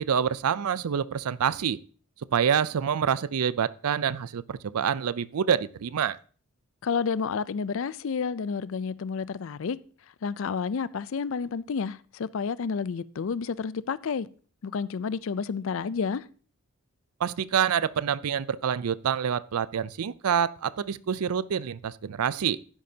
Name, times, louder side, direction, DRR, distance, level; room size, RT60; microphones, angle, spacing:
voice 1, 0.0-1.8 2.3-6.2 17.2-22.6, right 8 dB, 85° right, 0.4 m, -27 dB
voice 2, 6.8-9.8 10.2-14.3 14.6-16.3, left 5 dB, 60° left, 0.4 m, -30 dB
12.0 x 10.5 x 2.8 m
head